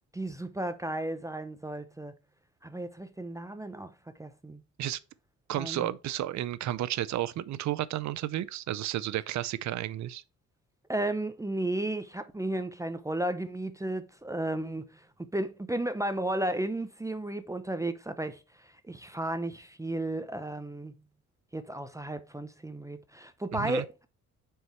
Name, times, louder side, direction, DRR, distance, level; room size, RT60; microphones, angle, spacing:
voice 1, 0.1-2.1 2.6-4.6 5.5-5.9 10.9-20.9 21.5-24.1, right 1 dB, 10° right, 0.6 m, -34 dB
voice 2, 5.5-10.2 23.6-23.8, right 13 dB, 70° right, 0.6 m, -32 dB
6.3 x 4.7 x 4.4 m
cardioid pair, 90°, 30 cm